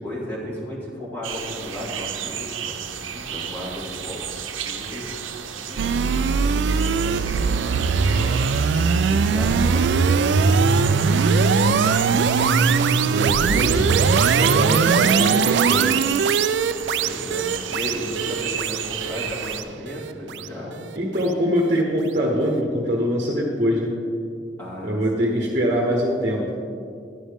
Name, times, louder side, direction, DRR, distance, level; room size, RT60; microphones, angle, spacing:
voice 1, 0.0-4.2 4.6-5.0 5.5-8.3 8.8-10.3 10.9-12.8 17.0-17.5 17.7-20.8 24.6-25.0, left 1 dB, 10° left, -7 dB, 2.1 m, -35 dB
sound 1, 1.2-19.6, right 8 dB, 85° right, 0.8 m, -33 dB
sound 2, 5.8-20.9, right 5 dB, 65° right, 0.3 m, -20 dB
voice 2, 12.8-14.0 14.4-15.9 20.9-23.9 24.8-26.5, equal, 40° right, -1 dB, 1.2 m, -23 dB
11.0 x 11.0 x 3.6 m, 2.3 s
head